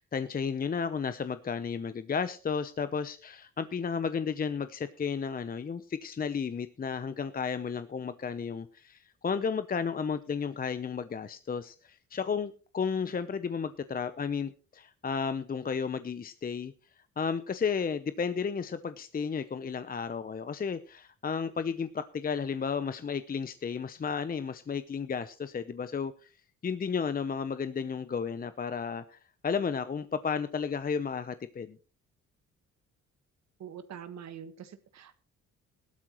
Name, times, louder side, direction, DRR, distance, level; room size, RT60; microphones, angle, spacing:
voice 1, 0.0-16.7 17.2-26.1 26.6-31.8, left 6 dB, 30° left, 12 dB, 0.7 m, -33 dB
voice 2, 33.6-35.1, right 8 dB, 60° right, 11 dB, 1.5 m, -44 dB
16.5 x 12.5 x 3.0 m, 0.36 s
cardioid pair, 90°, 30 cm